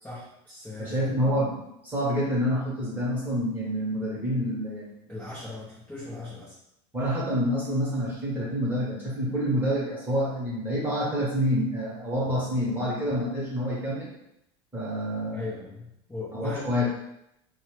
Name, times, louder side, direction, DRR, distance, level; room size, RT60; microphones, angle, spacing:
voice 1, 0.0-1.1 5.1-6.5 15.3-16.7, left 3 dB, 10° left, -10 dB, 0.8 m, -38 dB
voice 2, 0.8-5.1 6.9-14.1 14.7-15.5 16.3-16.9, equal, 10° right, -6 dB, 1.2 m, -27 dB
2.8 x 2.1 x 3.2 m, 0.81 s
supercardioid pair, 125°, 16 cm